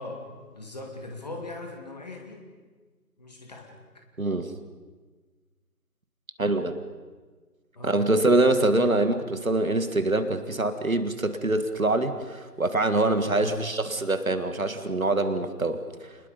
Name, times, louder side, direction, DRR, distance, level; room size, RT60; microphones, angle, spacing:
voice 1, 0.0-2.6 3.2-4.1 7.7-8.1 13.4-13.6, left 2 dB, 25° left, 2 dB, 2.5 m, -40 dB
voice 2, 4.2-4.5 6.4-6.8 7.8-16.2, right 2 dB, 60° right, 9 dB, 1.9 m, -24 dB
29.0 x 20.5 x 5.4 m, 1.4 s
figure-of-eight pair, 160°, 47 cm